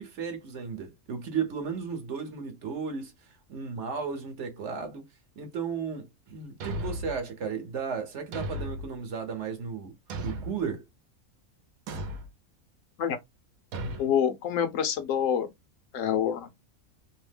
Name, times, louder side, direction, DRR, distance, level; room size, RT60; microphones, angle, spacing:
voice 1, 0.0-5.1 5.4-9.9 10.2-10.9, right 6 dB, 60° right, 1.0 m, -34 dB
Thump thud, 6.6-7.2 8.3-8.9 10.1-10.7 11.9-12.3 13.7-14.1, right 1 dB, 85° right, 1.1 m, -35 dB
voice 2, 14.0-15.5 15.9-16.5, left 8 dB, 70° left, 0.9 m, -26 dB
2.8 x 2.0 x 3.2 m
omnidirectional pair, 1.5 m